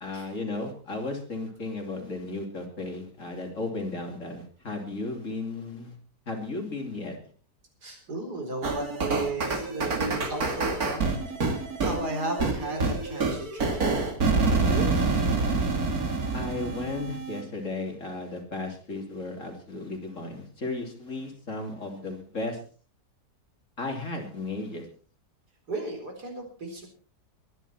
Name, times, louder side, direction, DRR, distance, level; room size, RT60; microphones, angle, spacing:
voice 1, 0.0-5.9 6.3-7.2 16.3-22.6 23.8-24.8, left 2 dB, 50° left, 3 dB, 3.3 m, -34 dB
voice 2, 7.8-14.2 14.5-15.0 25.7-26.9, right 2 dB, 85° right, 3 dB, 4.8 m, -35 dB
sound 1, 8.6-17.4, right 3 dB, 65° right, 2.8 m, -27 dB
22.0 x 11.0 x 4.3 m, 0.39 s
omnidirectional pair, 1.7 m